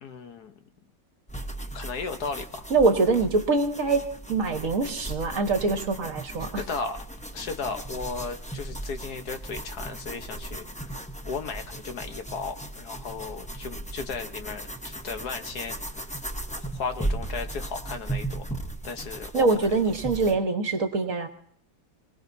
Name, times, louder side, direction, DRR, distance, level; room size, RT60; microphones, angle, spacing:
voice 1, 0.0-0.5 1.7-2.7 6.6-7.0 7.3-16.1 16.6-18.6 18.8-19.7, left 5 dB, 65° left, 7 dB, 1.5 m, -35 dB
sound 1, 1.3-20.4, right 1 dB, 10° left, 0.4 m, -37 dB
voice 2, 2.7-6.6 19.3-21.3, right 3 dB, 50° right, 6 dB, 1.6 m, -24 dB
27.0 x 18.5 x 2.7 m, 0.65 s
omnidirectional pair, 1.9 m